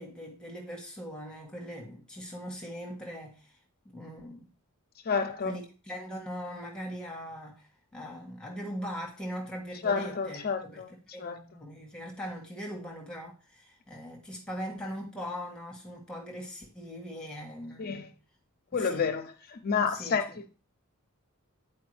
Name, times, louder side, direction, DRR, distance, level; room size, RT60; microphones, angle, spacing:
voice 1, 0.0-3.6 3.8-4.5 5.4-18.1 18.7-19.2 19.8-20.2, equal, 5° left, 1.3 m, -41 dB
voice 2, 5.1-5.6 9.8-10.9 11.2-11.4 17.8-18.1 18.7-19.2 19.5-20.5, left 5 dB, 45° left, 0.5 m, -30 dB
9.2 x 4.5 x 3.2 m
head